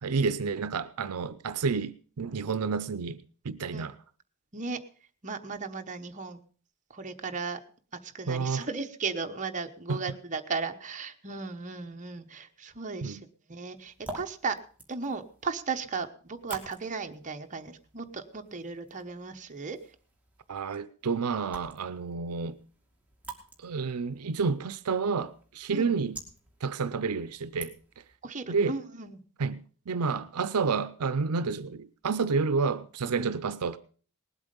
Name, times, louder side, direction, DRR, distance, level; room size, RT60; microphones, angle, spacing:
voice 1, 0.0-4.0 8.3-8.7 9.9-10.0 13.0-13.2 20.5-22.6 23.6-26.2 26.6-27.7 28.5-28.8 29.4-33.8, right 5 dB, 85° right, 0.6 m, -30 dB
voice 2, 5.2-6.4 6.9-7.6 8.0-13.2 13.5-14.6 14.9-19.8 25.7-25.9 28.2-29.2 33.2-33.3, right 4 dB, 35° right, 1.1 m, -36 dB
sound 1, 13.8-28.2, right 2 dB, 5° right, 2.3 m, -49 dB
19.0 x 8.1 x 5.2 m
head